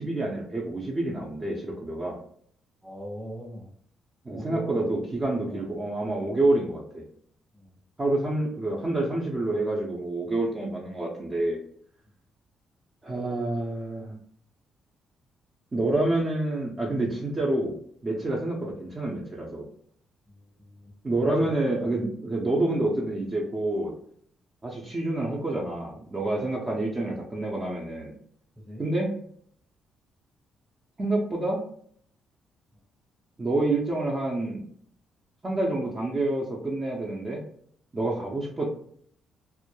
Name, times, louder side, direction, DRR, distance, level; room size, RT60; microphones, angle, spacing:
voice 1, 0.0-2.2 4.2-7.0 8.0-11.6 13.0-14.2 15.7-17.7 18.0-19.7 21.0-23.9 24.6-28.1 28.8-29.1 31.0-31.6 33.4-34.6 35.4-37.4 37.9-38.7, right 2 dB, 25° right, -3 dB, 0.5 m, -28 dB
voice 2, 2.8-3.7 4.3-4.8 5.4-5.7 7.5-7.7 20.3-20.9 21.4-21.5 26.6-26.7 28.6-28.8, equal, ahead, -1 dB, 0.9 m, -41 dB
2.2 x 2.1 x 2.9 m, 0.62 s
cardioid pair, 90°, 0 cm